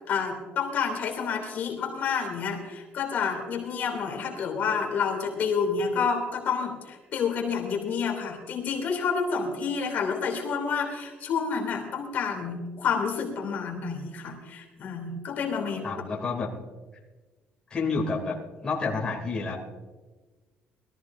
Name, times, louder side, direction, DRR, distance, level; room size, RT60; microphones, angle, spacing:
voice 1, 0.1-15.8, left 6 dB, 50° left, 0 dB, 2.8 m, -29 dB
voice 2, 15.8-16.5 17.7-19.6, left 4 dB, 20° left, -3 dB, 2.8 m, -29 dB
21.5 x 14.5 x 2.6 m, 1.3 s
cardioid pair, 165°, 4 cm